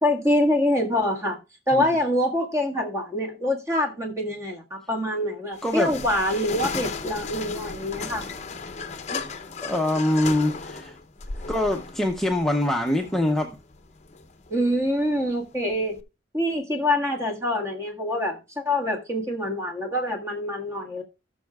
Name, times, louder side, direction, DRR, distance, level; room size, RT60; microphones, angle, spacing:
voice 1, 0.0-1.4 1.7-8.3 14.5-16.0 16.3-21.0, left 1 dB, 15° right, 1.6 m, -25 dB
sound 1, 5.5-16.0, left 4 dB, 40° left, 0.7 m, -36 dB
voice 2, 5.6-5.9 9.1-9.2 9.6-11.0 11.5-13.6, left 1 dB, ahead, 0.6 m, -24 dB
18.0 x 6.3 x 2.3 m
head